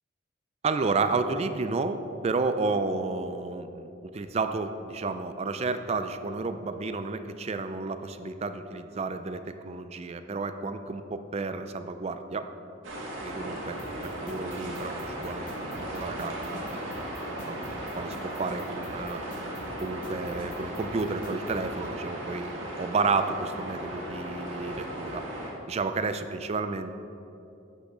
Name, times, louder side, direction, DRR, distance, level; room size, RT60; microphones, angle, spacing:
voice 1, 0.6-12.5 13.2-16.8 17.5-17.7 18.0-19.2 19.8-25.2 25.7-27.0, right 4 dB, 35° right, 9 dB, 0.4 m, -31 dB
sound 1, 12.8-25.5, right 1 dB, 80° right, 1.8 m, -36 dB
sound 2, 13.8-21.6, left 1 dB, 45° left, 1.4 m, -45 dB
7.6 x 6.7 x 6.1 m, 2.8 s
head